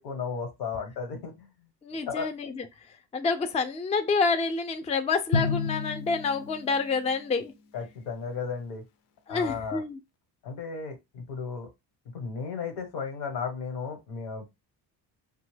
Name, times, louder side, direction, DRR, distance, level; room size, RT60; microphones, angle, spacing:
voice 1, 0.0-1.5 2.1-2.3 7.7-8.8 9.3-9.8 10.4-11.7 12.1-14.5, left 5 dB, 90° left, 1.2 m, -34 dB
voice 2, 1.8-2.7 3.1-7.5 9.3-10.0, left 4 dB, 15° left, 0.3 m, -28 dB
Drum, 5.3-7.5, left 5 dB, 65° left, 0.5 m, -31 dB
2.9 x 2.2 x 3.2 m
cardioid pair, 90°, 43 cm